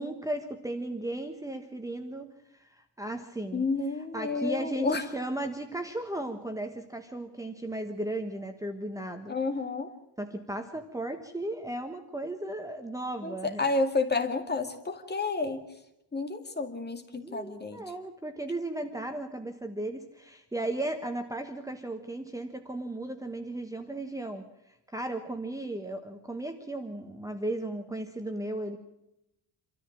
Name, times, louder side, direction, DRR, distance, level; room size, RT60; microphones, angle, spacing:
voice 1, 0.0-3.6 4.1-9.3 10.2-13.7 17.2-28.8, right 1 dB, 10° right, 6 dB, 1.3 m, -35 dB
voice 2, 3.5-5.1 9.3-9.9 13.2-15.6 16.1-17.8, left 3 dB, 25° left, 6 dB, 2.2 m, -30 dB
27.0 x 14.0 x 7.5 m, 0.84 s
cardioid pair, 145°, 43 cm